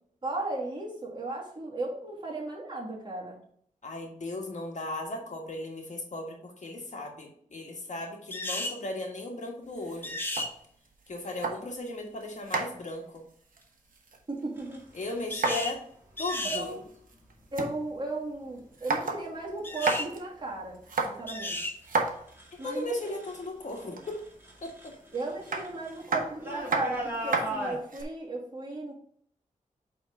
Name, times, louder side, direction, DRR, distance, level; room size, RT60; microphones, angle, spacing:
voice 1, 0.2-3.4 14.3-14.8 15.4-15.7 16.4-16.8 17.5-20.8 21.0-21.6 22.6-23.2 25.1-28.9, right 2 dB, 35° right, -4 dB, 2.5 m, -35 dB
voice 2, 3.8-10.2 11.1-13.2 14.9-15.8 16.2-16.8 22.6-24.2 24.6-24.9, left 2 dB, 60° left, 1 dB, 1.6 m, -36 dB
sound 1, 8.3-8.8 10.0-10.5 15.3-15.8 16.2-16.6 19.6-20.1 21.3-21.8, left 2 dB, 15° left, 0.9 m, -34 dB
sound 2, 9.6-11.9 12.2-14.4 14.7-15.8 16.1-16.2 16.4-17.7 18.1-18.2 18.6-19.3 19.6-20.2 20.7-22.8 23.7-24.2 25.4-28.0, right 3 dB, 85° right, 1.1 m, -33 dB
sound 3, 14.6-15.3 16.4-16.7 17.3-17.7 18.3-18.8 19.2-23.5 23.7-27.8, right 1 dB, 15° right, 2.1 m, -40 dB
8.5 x 3.6 x 3.7 m, 0.63 s
wide cardioid pair, 90°, 14 cm